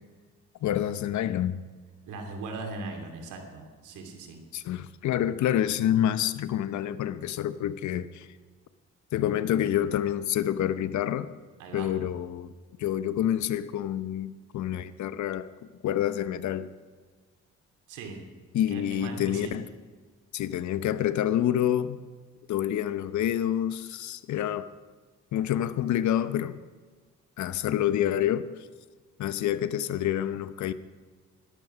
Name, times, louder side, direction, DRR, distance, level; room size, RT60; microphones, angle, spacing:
voice 1, 0.6-1.6 4.5-8.3 9.1-11.3 11.7-12.5 12.8-15.5 15.8-16.7 18.5-19.7 20.3-22.0 22.5-24.7 25.3-26.6 27.4-28.5 29.2-30.7, left 11 dB, 70° left, 0.8 m, -27 dB
voice 2, 2.0-4.4 11.6-11.9 17.9-18.2 18.7-19.6, right 3 dB, 85° right, 2.8 m, -39 dB
12.5 x 12.5 x 6.1 m
cardioid pair, 90°, 30 cm